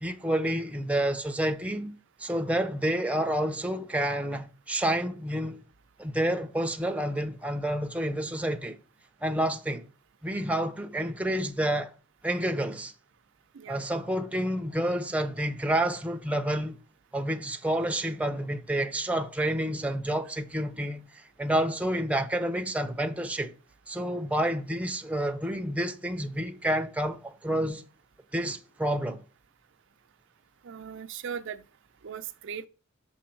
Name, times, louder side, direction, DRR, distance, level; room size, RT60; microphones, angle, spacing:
voice 1, 0.0-1.9 2.2-5.6 6.0-8.8 9.2-9.9 10.2-11.9 12.2-12.9 13.7-16.8 17.1-21.1 21.4-23.5 23.9-27.8 28.3-29.2, right 1 dB, 5° right, 0.6 m, -29 dB
voice 2, 30.6-31.6 32.0-32.7, right 7 dB, 65° right, 0.5 m, -38 dB
6.2 x 4.4 x 4.5 m
head